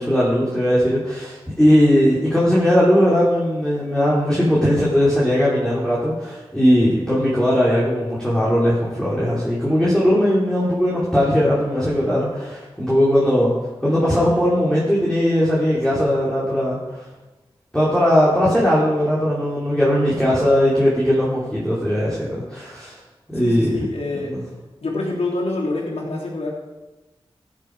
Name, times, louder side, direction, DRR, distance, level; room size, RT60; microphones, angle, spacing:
voice 1, 0.0-13.5 13.8-17.0 17.7-23.0 23.3-23.9 24.3-24.4, equal, 5° left, -7 dB, 3.5 m, -19 dB
voice 2, 23.3-24.3 24.8-26.5, left 2 dB, 80° left, -4 dB, 3.4 m, -26 dB
16.0 x 7.4 x 4.8 m, 1.1 s
wide cardioid pair, 60°, 10 cm